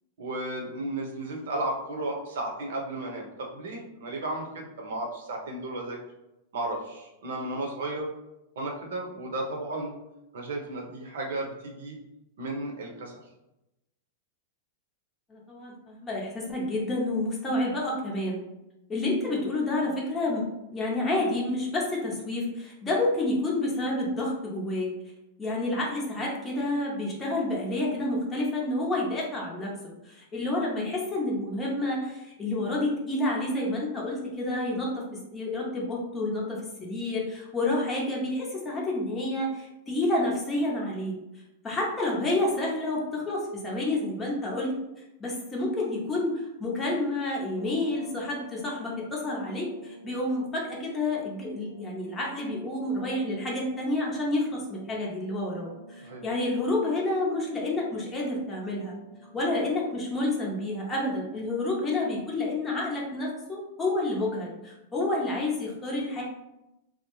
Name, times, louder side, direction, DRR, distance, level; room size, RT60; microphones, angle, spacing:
voice 1, 0.2-6.0 6.5-8.1 8.6-10.0 10.3-12.0 12.4-13.1 56.0-56.2, right 2 dB, 80° right, 0 dB, 0.7 m, -34 dB
voice 2, 15.3-18.4 18.9-24.9 25.4-29.7 30.0-41.2 41.6-44.8 45.2-58.9 59.3-66.2, left 2 dB, 15° left, -4 dB, 0.6 m, -29 dB
sound 1, 47.4-62.6, equal, 50° left, 0.8 m, -50 dB
2.7 x 2.1 x 3.0 m, 0.92 s
hypercardioid pair, 130°, 0 cm